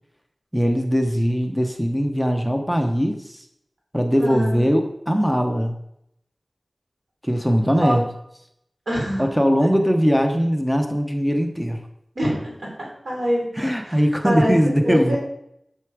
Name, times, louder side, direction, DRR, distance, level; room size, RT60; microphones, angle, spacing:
voice 1, 0.5-3.4 3.9-5.8 7.2-8.0 9.2-11.8 13.6-15.2, equal, 5° right, 4 dB, 1.0 m, -20 dB
voice 2, 4.2-4.6 7.8-8.0 8.9-9.3 12.2-13.5 13.8-14.5 14.8-15.2, equal, 85° right, -4 dB, 4.1 m, -25 dB
8.1 x 7.0 x 5.0 m, 0.76 s
wide cardioid pair, 70°, 0 cm